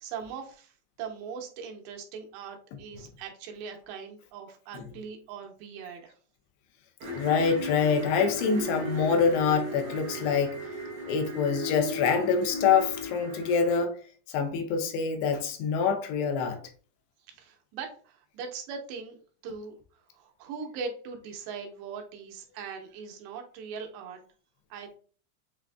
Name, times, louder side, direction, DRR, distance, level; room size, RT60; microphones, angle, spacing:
voice 1, 0.0-6.1 17.3-19.2 19.4-24.2 24.7-25.0, right 5 dB, 90° right, 3.0 m, -40 dB
sound 1, 7.0-13.8, left 1 dB, 65° right, 2.2 m, -36 dB
voice 2, 7.1-10.6 11.1-13.9 14.3-16.6, left 6 dB, 80° left, 2.7 m, -25 dB
7.4 x 2.5 x 2.3 m
omnidirectional pair, 4.8 m